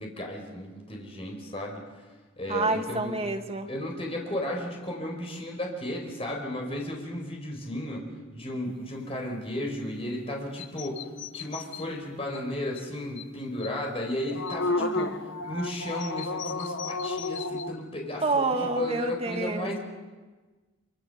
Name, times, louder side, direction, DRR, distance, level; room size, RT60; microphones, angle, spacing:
voice 1, 0.0-2.1 2.4-3.2 3.7-8.0 8.3-11.1 11.3-19.8, left 1 dB, 30° left, 1 dB, 4.9 m, -34 dB
voice 2, 2.5-3.7 14.8-15.2 18.2-19.8, right 3 dB, 30° right, 4 dB, 2.0 m, -29 dB
sound 1, 10.6-11.8 12.3-12.4 12.7-12.8 13.2-13.3 13.6-13.7 14.1-17.7, left 3 dB, 70° left, 1.0 m, -32 dB
26.5 x 26.0 x 6.9 m, 1.3 s
head